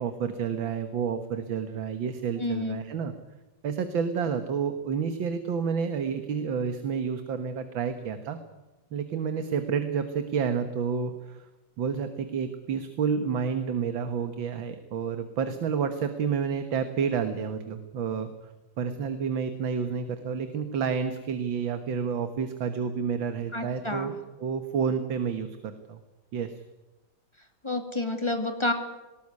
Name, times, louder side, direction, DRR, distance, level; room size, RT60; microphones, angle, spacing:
voice 1, 0.0-3.1 3.6-8.4 8.9-11.5 11.8-18.3 18.8-24.1 24.4-26.0 26.3-26.6, right 6 dB, 80° right, 8 dB, 2.2 m, -29 dB
voice 2, 2.4-2.8 23.5-24.1 27.6-28.7, left 2 dB, 15° left, 6 dB, 2.3 m, -29 dB
19.5 x 19.0 x 9.7 m, 1.1 s
omnidirectional pair, 2.1 m